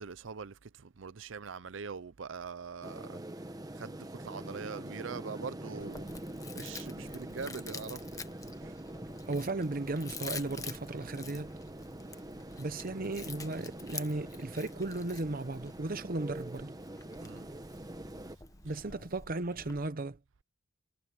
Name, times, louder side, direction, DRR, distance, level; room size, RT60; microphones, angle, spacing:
voice 1, 0.0-3.2 3.7-6.1 6.5-8.2 8.6-8.7 17.2-17.5 18.7-18.8, right 5 dB, 80° right, 0.6 m, -43 dB
sound 1, 2.8-18.4, right 1 dB, 20° right, 1.2 m, -44 dB
Chewing mastication, 5.8-19.9, left 4 dB, 20° left, 1.3 m, -48 dB
voice 2, 9.3-11.5 12.6-16.7 18.6-20.2, right 2 dB, 50° right, 0.9 m, -35 dB
head